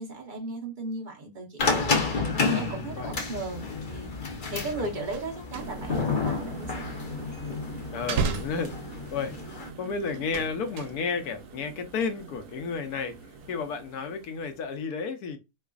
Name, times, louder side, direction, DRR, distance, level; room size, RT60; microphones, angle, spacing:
voice 1, 0.0-1.9 2.4-4.1 4.5-6.9 7.2-7.4, right 3 dB, 40° right, 0.9 m, -36 dB
sound 1, 1.6-9.7, left 4 dB, 45° left, 0.7 m, -30 dB
sound 2, 4.8-6.1 6.3-7.5 7.9-9.3 10.1-11.3 11.6-12.0 12.3-12.5, right 5 dB, 90° right, 1.2 m, -34 dB
sound 3, 5.5-14.9, right 3 dB, 65° right, 1.1 m, -44 dB
voice 2, 7.9-8.7 9.1-9.3 9.8-13.2 13.5-15.4, left 5 dB, 75° left, 1.1 m, -32 dB
4.5 x 2.4 x 2.4 m
omnidirectional pair, 1.7 m